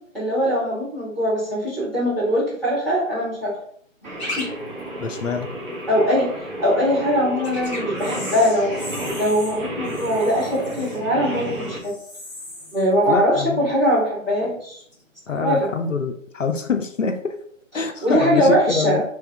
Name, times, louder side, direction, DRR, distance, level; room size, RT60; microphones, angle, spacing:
voice 1, 0.1-3.6 4.4-4.5 5.9-6.3 6.6-8.7 9.1-11.9 12.7-14.8 15.4-15.7 17.7-19.0, equal, ahead, -15 dB, 1.1 m, -21 dB
Singing, 4.0-11.8, right 1 dB, 40° right, 1.4 m, -31 dB
sound 1, 4.2-4.4 4.8-4.9 7.4-14.2 14.5-15.0 15.7-15.9, left 1 dB, 25° left, 1.2 m, -37 dB
voice 2, 5.0-5.5 13.1-13.7 15.3-17.4 17.7-19.0, left 4 dB, 70° left, 6 dB, 0.6 m, -25 dB
3.4 x 3.4 x 3.3 m, 0.64 s
figure-of-eight pair, 145°, 40 cm